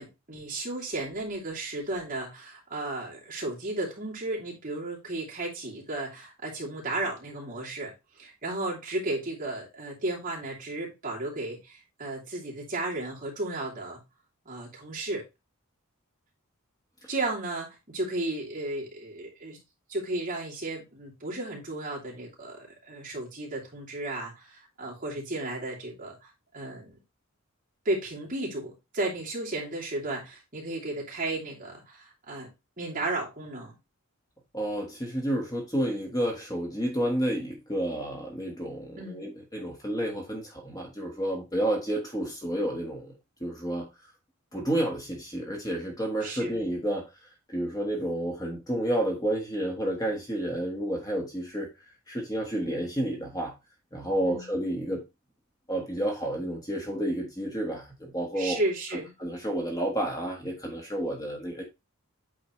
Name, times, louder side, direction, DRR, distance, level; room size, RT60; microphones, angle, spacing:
voice 1, 0.0-14.0 14.4-15.2 17.1-19.6 19.9-27.0 27.8-32.5 32.8-33.8 39.0-39.2 46.2-46.6 54.2-54.5 58.3-59.1, right 2 dB, 40° right, -4 dB, 2.8 m, -34 dB
voice 2, 34.5-43.1 43.4-43.9 44.5-47.1 47.5-51.7 52.1-53.5 53.9-55.0 55.7-58.6 59.2-61.6, right 1 dB, 15° left, 0 dB, 1.5 m, -30 dB
8.6 x 4.2 x 3.1 m, 0.24 s
head